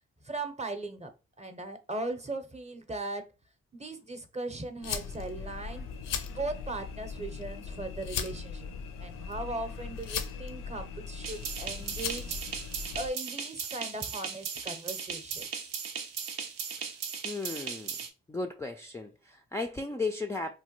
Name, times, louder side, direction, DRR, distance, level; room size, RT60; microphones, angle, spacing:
voice 1, 0.2-1.1 1.4-3.3 3.7-5.9 6.3-8.7 9.0-12.4 12.9-15.7, right 2 dB, 20° right, 0.7 m, -38 dB
sound 1, 4.8-13.1, left 6 dB, 80° left, 0.5 m, -38 dB
sound 2, 11.2-18.1, right 6 dB, 90° right, 0.5 m, -37 dB
voice 2, 17.2-17.9 18.3-20.5, left 3 dB, 10° left, 0.3 m, -35 dB
3.1 x 2.2 x 3.0 m
supercardioid pair, 45°, 32 cm